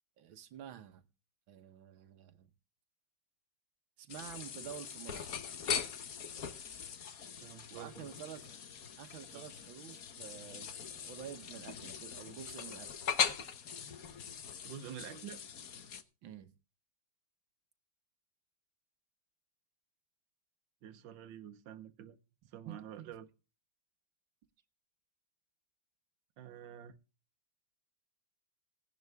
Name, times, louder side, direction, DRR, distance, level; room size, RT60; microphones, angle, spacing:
voice 1, 0.2-1.0 1.5-2.5 4.0-5.4 7.7-8.6 9.0-13.0 16.2-16.5 22.6-23.1, right 10 dB, 90° right, 1.9 m, -49 dB
sound 1, 4.1-16.0, left 7 dB, 55° left, 1.4 m, -40 dB
voice 2, 7.1-8.1 9.3-9.4 14.6-15.4 20.8-22.2 22.5-23.3 26.4-26.9, right 9 dB, 75° right, 1.7 m, -48 dB
17.5 x 11.0 x 3.5 m
omnidirectional pair, 2.1 m